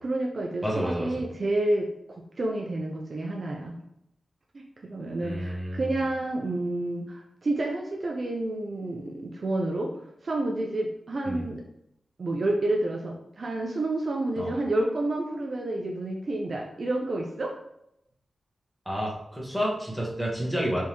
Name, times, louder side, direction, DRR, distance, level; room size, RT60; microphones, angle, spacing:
voice 1, 0.0-3.7 4.5-9.9 10.2-11.6 12.2-17.6, right 2 dB, 45° right, 0 dB, 0.5 m, -29 dB
voice 2, 0.6-1.1 5.2-5.8 11.3-11.4 14.4-14.5 18.8-20.8, equal, ahead, -5 dB, 1.3 m, -30 dB
4.5 x 3.4 x 3.0 m, 0.77 s
wide cardioid pair, 145°, 0 cm